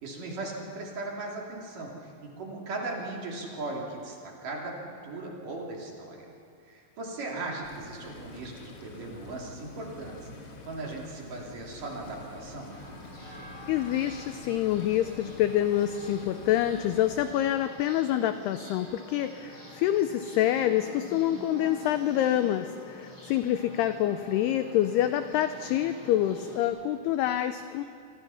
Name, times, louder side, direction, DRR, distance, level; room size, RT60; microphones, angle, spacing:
voice 1, 0.0-6.3 6.7-12.8, right 2 dB, 50° right, -2 dB, 4.2 m, -38 dB
sound 1, 7.6-17.3, left 3 dB, 60° left, 1.5 m, -47 dB
sound 2, 12.7-26.6, equal, 25° left, 6.5 m, -47 dB
voice 2, 13.7-27.8, left 12 dB, 85° left, 10 dB, 2.3 m, -27 dB
26.5 x 25.0 x 5.8 m, 2.4 s
omnidirectional pair, 5.4 m